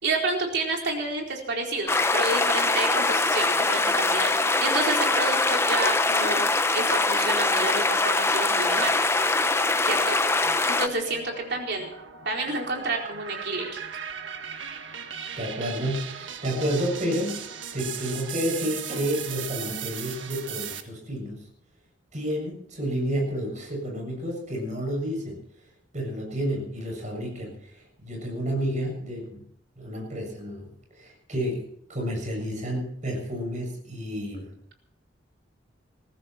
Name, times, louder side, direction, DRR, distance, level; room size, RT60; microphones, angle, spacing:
voice 1, 0.0-4.3 4.6-6.5 6.7-8.9 9.8-11.9 12.2-13.8, right 2 dB, 65° right, 1 dB, 4.3 m, -29 dB
sound 1, 1.9-10.9, left 3 dB, 15° left, 0.8 m, -23 dB
sound 2, 8.7-9.6 10.1-20.8, right 8 dB, 85° right, 1.6 m, -38 dB
voice 2, 15.4-17.4 17.7-21.4 22.1-25.4 25.9-27.7 28.0-29.5 29.8-34.5, equal, 40° right, 0 dB, 7.3 m, -30 dB
21.0 x 15.0 x 4.5 m, 0.67 s
head